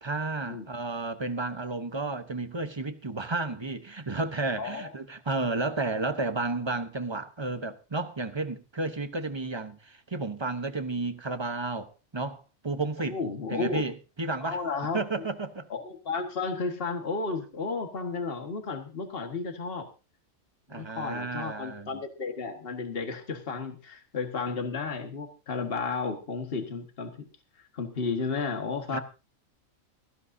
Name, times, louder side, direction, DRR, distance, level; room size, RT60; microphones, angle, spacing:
voice 1, 0.0-13.2 13.5-14.6 14.9-15.7 20.7-21.9 28.9-29.0, right 3 dB, 25° right, 0.9 m, -32 dB
voice 2, 4.6-4.9 13.1-13.8 14.4-15.2 15.7-19.9 20.7-27.3 27.7-29.0, left 4 dB, 45° left, 1.8 m, -33 dB
17.0 x 15.5 x 2.7 m
omnidirectional pair, 1.4 m